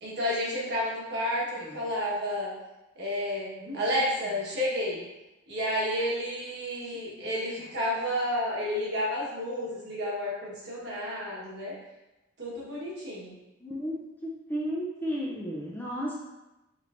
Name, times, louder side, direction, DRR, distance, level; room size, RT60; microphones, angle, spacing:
voice 1, 0.0-2.5 3.0-5.0 5.5-11.7 12.4-13.3, left 1 dB, 55° right, -6 dB, 1.3 m, -31 dB
voice 2, 13.6-16.1, equal, 10° left, -4 dB, 0.5 m, -34 dB
4.8 x 3.3 x 2.5 m, 1.0 s
head